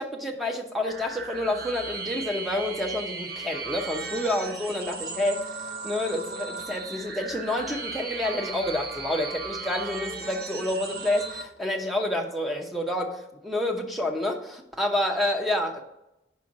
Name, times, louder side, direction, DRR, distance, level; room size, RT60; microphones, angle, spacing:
voice 1, 0.0-5.5 5.8-15.8, left 1 dB, ahead, 2 dB, 0.7 m, -29 dB
sound 1, 0.8-11.4, right 4 dB, 55° right, 0.8 m, -36 dB
5.3 x 4.4 x 6.1 m, 0.87 s
head